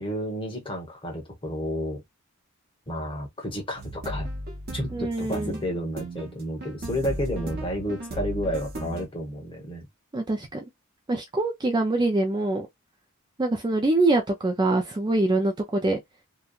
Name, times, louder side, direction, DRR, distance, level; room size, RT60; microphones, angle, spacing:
voice 1, 0.0-2.0 2.9-4.3 4.7-9.9, equal, 25° left, 1.1 m, -31 dB
sound 1, 3.8-9.1, equal, 45° right, 0.8 m, -35 dB
voice 2, 4.9-5.6 10.1-10.6 11.1-12.7 13.4-16.0, right 2 dB, 20° right, 0.4 m, -24 dB
2.9 x 2.2 x 2.3 m
head